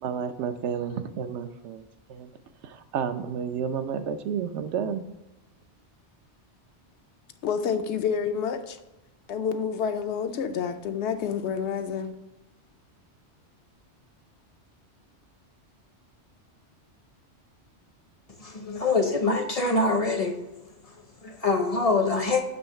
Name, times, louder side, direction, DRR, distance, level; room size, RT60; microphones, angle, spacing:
voice 1, 0.0-2.3 2.6-5.0, right 7 dB, 80° right, 9 dB, 0.9 m, -31 dB
voice 2, 7.4-8.8 9.3-12.2, left 7 dB, 75° left, 8 dB, 0.9 m, -28 dB
voice 3, 18.4-20.4 20.9-22.4, left 3 dB, 40° left, 5 dB, 0.6 m, -25 dB
7.0 x 3.1 x 5.4 m, 0.99 s
omnidirectional pair, 1.2 m